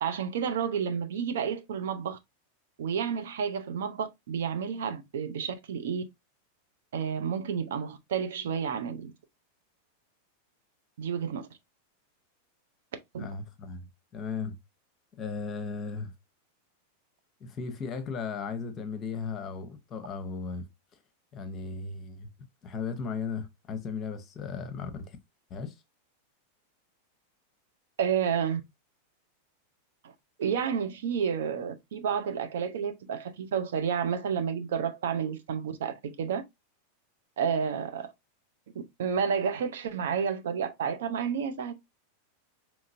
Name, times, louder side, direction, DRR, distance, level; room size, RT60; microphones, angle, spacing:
voice 1, 0.0-2.2 2.8-6.0 6.9-9.1 11.0-11.5 13.1-13.3 28.0-28.6 30.0-30.1 30.4-36.4 37.4-38.1 39.0-41.7, right 7 dB, 60° right, 0.6 m, -30 dB
voice 2, 13.2-13.9 14.1-14.6 15.2-16.1 17.4-20.7 21.3-22.3 22.6-25.2 25.5-25.8, left 5 dB, 30° left, 0.9 m, -36 dB
5.0 x 3.1 x 2.5 m
figure-of-eight pair, 90°, 0 cm